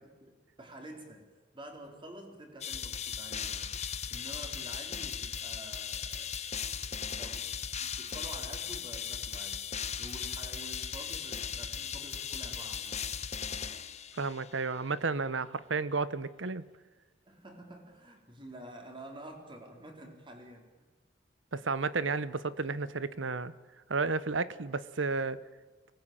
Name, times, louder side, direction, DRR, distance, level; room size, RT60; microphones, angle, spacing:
voice 1, 0.2-3.8 4.1-9.7 10.0-13.1 17.3-20.7, right 1 dB, 25° right, 3 dB, 4.2 m, -49 dB
sound 1, 2.6-14.5, left 7 dB, 35° left, 1.1 m, -37 dB
Rattle (instrument), 5.1-5.6 5.8-13.1, right 1 dB, 10° right, 3.3 m, -58 dB
voice 2, 14.2-16.7 21.5-23.5 23.9-25.4, right 4 dB, 80° right, 16 dB, 1.0 m, -32 dB
24.0 x 19.0 x 9.1 m, 1.3 s
head